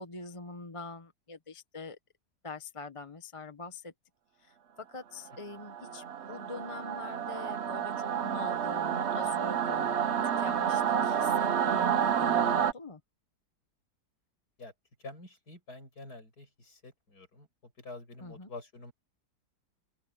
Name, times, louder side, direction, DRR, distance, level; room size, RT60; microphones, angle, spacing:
voice 1, 0.0-2.0 2.4-3.9 4.4-10.0 10.4-13.0 18.2-18.5, left 3 dB, 25° left, 0.9 m, -44 dB
Singing / Musical instrument, 5.5-12.7, right 8 dB, 50° right, 1.0 m, -29 dB
voice 2, 15.0-18.9, left 2 dB, 70° left, 8.2 m, -47 dB
open air
omnidirectional pair, 1.7 m